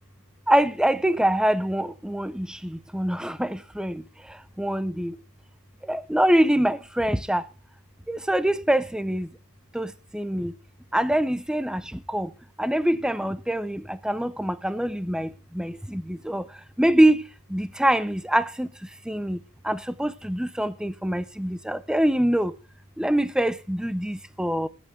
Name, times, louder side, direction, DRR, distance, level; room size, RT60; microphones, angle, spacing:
voice 1, 0.5-2.5 2.9-3.9 4.6-5.1 5.9-7.4 8.1-9.3 9.8-9.9 10.1-10.5 10.9-11.8 12.1-12.3 12.6-15.3 15.6-16.4 16.8-17.2 17.5-18.7 19.1-19.4 19.7-22.5 23.0-24.7, right 1 dB, 5° right, 0.5 m, -24 dB
20.5 x 8.2 x 3.5 m
head